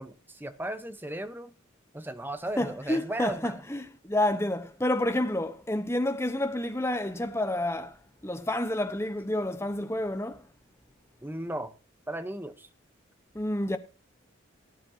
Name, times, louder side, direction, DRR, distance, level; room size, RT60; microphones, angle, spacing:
voice 1, 0.0-1.5 1.9-3.6 11.2-11.7 12.1-12.7, right 1 dB, 10° right, 0.9 m, -36 dB
voice 2, 2.6-10.4 13.3-13.8, left 1 dB, 15° left, 1.0 m, -29 dB
18.5 x 8.9 x 2.8 m
head